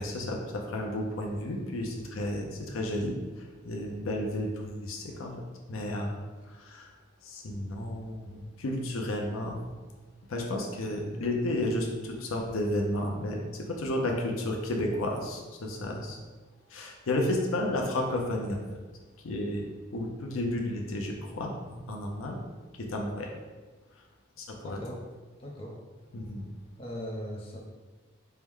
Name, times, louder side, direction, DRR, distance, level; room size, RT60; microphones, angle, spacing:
voice 1, 0.0-5.3 5.7-6.2 6.4-6.9 7.2-9.6 10.3-16.2 16.7-18.6 19.2-19.6 19.9-21.5 21.9-22.4 22.8-23.4 24.4-24.8 26.1-26.5, left 1 dB, 85° left, 1 dB, 0.6 m, -32 dB
voice 2, 24.6-25.0 25.4-25.7 26.8-27.6, equal, 25° left, -3 dB, 0.6 m, -38 dB
4.6 x 2.1 x 3.5 m, 1.3 s
head